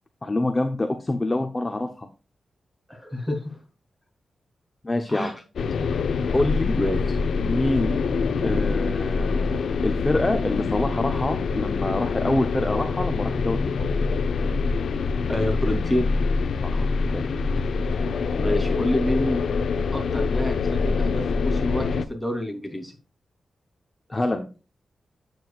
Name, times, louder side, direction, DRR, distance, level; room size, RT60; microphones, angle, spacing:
voice 1, 0.2-2.1 4.8-5.3 6.3-6.7 7.4-7.9 8.4-13.7 16.6-17.3 24.1-24.5, left 2 dB, 20° left, 5 dB, 0.9 m, -26 dB
voice 2, 2.9-3.6 5.1-5.3 6.7-7.0 15.3-16.1 18.3-19.4 19.9-22.9, left 1 dB, ahead, 1 dB, 3.4 m, -27 dB
sound 1, 5.6-22.1, left 4 dB, 85° left, 0.7 m, -25 dB
9.1 x 8.0 x 2.4 m, 0.32 s
wide cardioid pair, 105°, 0 cm